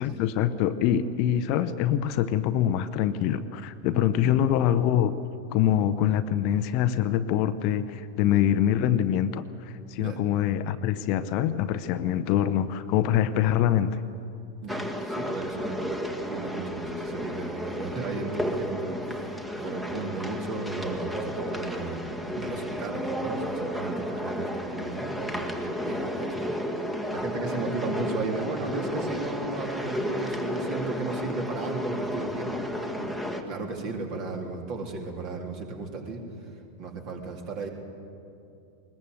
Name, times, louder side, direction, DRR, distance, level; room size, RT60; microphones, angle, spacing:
voice 1, 0.0-5.1 5.5-14.0, left 10 dB, 45° left, 11 dB, 0.8 m, -24 dB
voice 2, 14.6-15.9 16.3-33.1 33.5-36.2 36.8-37.7, right 3 dB, 40° right, 2 dB, 3.3 m, -35 dB
sound 1, 14.7-33.4, equal, 5° right, 1.7 m, -32 dB
20.5 x 20.5 x 7.9 m, 2.6 s
figure-of-eight pair, 90°, 0 cm